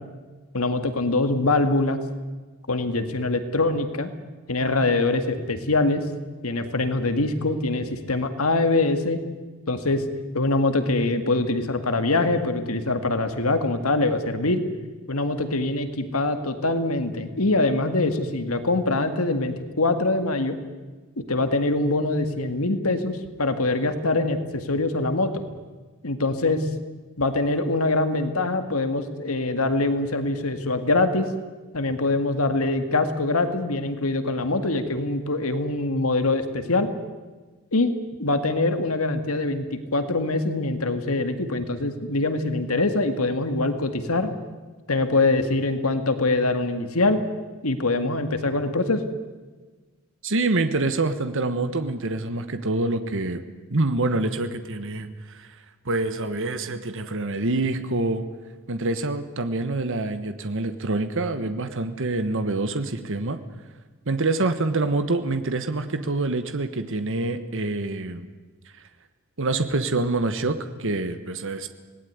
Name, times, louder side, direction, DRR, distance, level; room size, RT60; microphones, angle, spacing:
voice 1, 0.5-2.0 2.7-4.1 4.5-6.0 6.4-9.2 9.7-10.0 10.3-14.6 15.1-20.6 21.3-25.3 26.0-26.7 27.2-31.3 31.7-36.9 37.7-37.9 38.2-44.3 44.9-47.2 47.6-49.0, left 2 dB, 80° left, 9 dB, 2.1 m, -23 dB
voice 2, 50.2-53.4 53.7-58.3 58.7-63.4 64.0-68.3 68.6-68.9 69.4-71.7, right 2 dB, 60° right, 9 dB, 1.5 m, -26 dB
26.0 x 19.0 x 9.6 m, 1.3 s
head